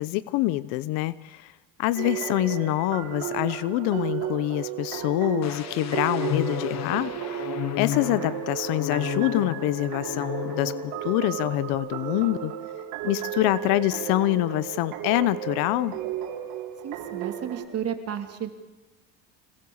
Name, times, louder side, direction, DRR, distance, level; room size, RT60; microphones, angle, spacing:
voice 1, 0.0-1.5 1.8-7.5 7.8-12.5 13.0-16.0, left 17 dB, 75° left, 17 dB, 0.9 m, -26 dB
sound 1, 2.0-17.7, right 10 dB, 75° right, 3.8 m, -34 dB
sound 2, 5.4-11.1 11.4-11.7, left 13 dB, 45° left, 1.3 m, -33 dB
voice 2, 16.8-18.5, right 9 dB, 40° right, 5 dB, 2.9 m, -32 dB
26.5 x 20.0 x 7.1 m, 1.1 s
cardioid pair, 115°, 36 cm